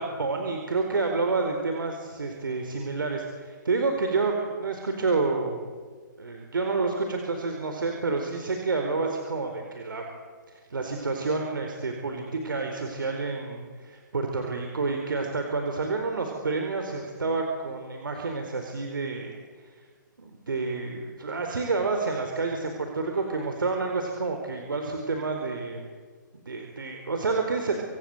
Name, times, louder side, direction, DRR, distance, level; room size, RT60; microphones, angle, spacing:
voice 1, 0.0-5.7 6.2-10.0 10.5-19.4 20.2-25.9 26.5-27.7, right 3 dB, 90° right, 4 dB, 4.5 m, -29 dB
28.0 x 25.5 x 8.1 m, 1.5 s
hypercardioid pair, 155°, 11 cm